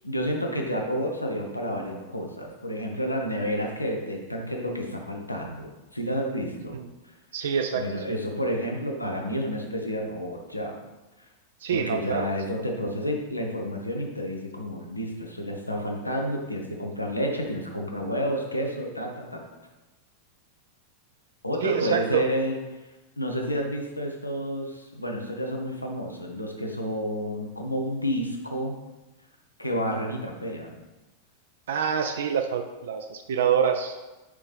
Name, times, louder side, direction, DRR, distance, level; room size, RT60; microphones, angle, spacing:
voice 1, 0.0-6.8 7.0-7.1 7.7-10.8 11.7-19.4 21.4-22.6 23.2-28.7 29.6-30.8, equal, 85° left, 1 dB, 1.0 m, -30 dB
voice 2, 7.3-7.8 11.6-12.3 21.6-22.3 31.7-34.1, right 7 dB, 60° right, 6 dB, 0.4 m, -26 dB
6.7 x 5.3 x 3.4 m, 1.1 s
figure-of-eight pair, 90°, 0 cm